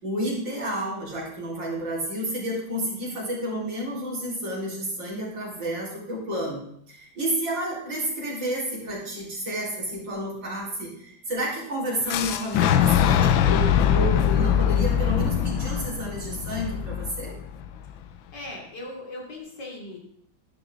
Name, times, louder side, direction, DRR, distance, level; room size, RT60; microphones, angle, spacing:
voice 1, 0.0-6.6 6.9-17.3, right 1 dB, 70° right, -5 dB, 5.0 m, -30 dB
Boom, 12.1-18.0, left 9 dB, 85° left, 1.5 m, -22 dB
voice 2, 18.3-20.0, left 2 dB, 60° left, -1 dB, 3.5 m, -38 dB
13.0 x 12.0 x 3.8 m, 0.69 s
omnidirectional pair, 2.1 m